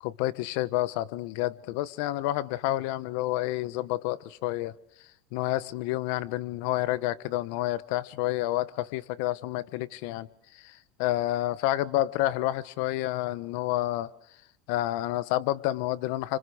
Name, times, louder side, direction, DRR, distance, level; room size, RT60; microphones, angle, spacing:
voice 1, 0.0-4.7 5.3-14.1 14.7-16.4, left 16 dB, 70° left, 16 dB, 1.1 m, -29 dB
29.5 x 26.0 x 6.4 m, 0.70 s
supercardioid pair, 135°, 0 cm